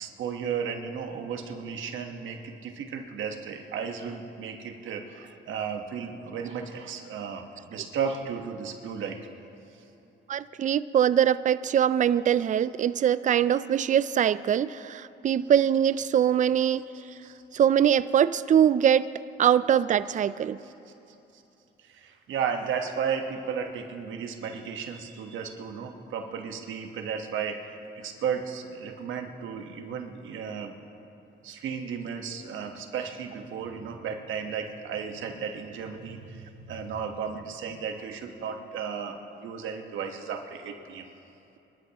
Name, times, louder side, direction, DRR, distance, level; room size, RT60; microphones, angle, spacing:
voice 1, 0.0-9.2 9.7-9.8 17.2-17.4 21.3-21.4 21.8-30.7 31.4-41.1, right 6 dB, 75° right, 5 dB, 1.3 m, -34 dB
voice 2, 10.3-16.9 17.5-19.1 19.4-20.6, right 9 dB, 40° right, 16 dB, 0.4 m, -23 dB
25.0 x 12.5 x 3.0 m, 2.9 s
cardioid pair, 90°, 20 cm